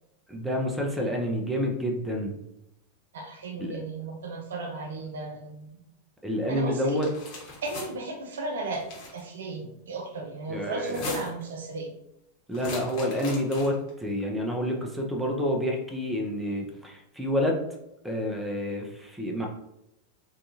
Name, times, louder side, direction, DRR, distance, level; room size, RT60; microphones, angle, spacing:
voice 1, 0.3-2.3 3.6-3.7 6.2-7.1 10.5-11.1 12.5-17.6 18.0-19.5, equal, 5° right, 0 dB, 0.5 m, -28 dB
voice 2, 3.1-5.8 6.5-7.0 7.6-8.8 9.1-11.9, right 3 dB, 60° right, 4 dB, 0.4 m, -35 dB
sound 1, 6.9-7.9 8.7-9.2 10.8-11.5 12.5-13.9, left 3 dB, 40° left, 0.9 m, -39 dB
2.6 x 2.2 x 2.8 m, 0.84 s
figure-of-eight pair, 90°, 0 cm